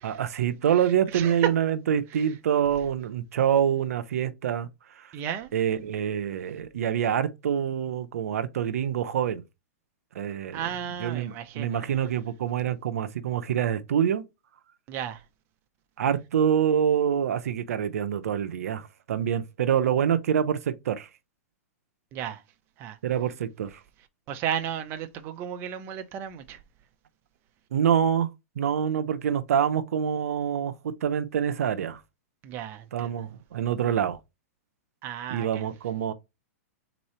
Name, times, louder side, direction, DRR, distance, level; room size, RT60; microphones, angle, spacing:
voice 1, 0.0-4.7 5.0-5.1 5.5-9.4 10.1-10.6 11.0-14.2 16.0-21.1 23.0-23.8 27.7-28.3 28.6-32.0 32.9-34.2 35.3-36.1, right 9 dB, 75° right, 0.6 m, -26 dB
voice 2, 5.1-5.5 10.5-12.0 14.9-15.2 22.1-22.4 22.8-23.0 24.3-26.6 32.4-33.2 35.0-35.6, right 9 dB, 30° right, 0.6 m, -34 dB
3.7 x 3.0 x 4.3 m
hypercardioid pair, 145°, 8 cm